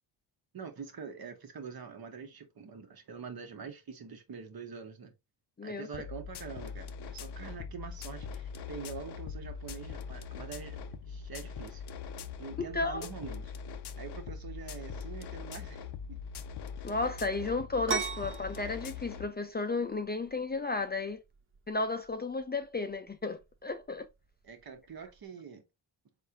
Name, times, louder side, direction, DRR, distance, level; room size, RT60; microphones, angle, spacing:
voice 1, 0.5-5.1 5.6-10.8 11.1-11.8 12.4-13.5 14.0-16.2 24.4-25.6, right 6 dB, 55° right, 1.3 m, -45 dB
sound 1, 5.9-19.3, left 6 dB, 65° left, 0.7 m, -42 dB
voice 2, 12.7-13.1 16.8-21.2 21.7-24.1, left 3 dB, 25° left, 0.5 m, -33 dB
sound 2, 17.9-25.3, right 6 dB, 30° right, 0.7 m, -41 dB
3.9 x 3.9 x 2.7 m
cardioid pair, 75°, 44 cm